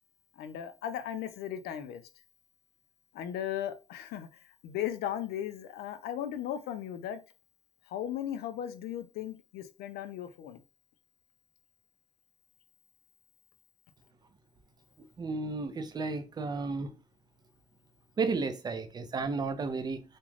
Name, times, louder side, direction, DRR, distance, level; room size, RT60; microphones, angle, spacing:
voice 1, 0.4-2.0 3.1-7.2 7.9-10.6, left 10 dB, 70° left, 0.4 m, -37 dB
voice 2, 15.2-16.9 18.2-20.0, right 4 dB, 25° right, 0.4 m, -33 dB
2.4 x 2.1 x 3.1 m
cardioid pair, 110°, 17 cm